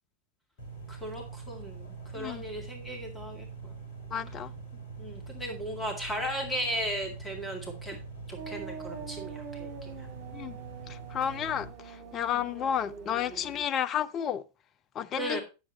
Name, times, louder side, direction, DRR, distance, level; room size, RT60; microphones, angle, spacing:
sound 1, 0.6-11.7, right 4 dB, 45° left, 3.2 m, -44 dB
voice 1, 0.9-3.7 5.0-8.0 8.3-10.1 12.3-12.4 15.2-15.4, equal, 10° left, 2.1 m, -36 dB
voice 2, 4.1-4.5 10.3-10.6 10.9-14.4 14.9-15.4, left 9 dB, 30° left, 0.5 m, -32 dB
sound 2, 8.4-13.6, right 5 dB, 45° right, 2.1 m, -44 dB
9.8 x 7.3 x 4.0 m
figure-of-eight pair, 90°, 0 cm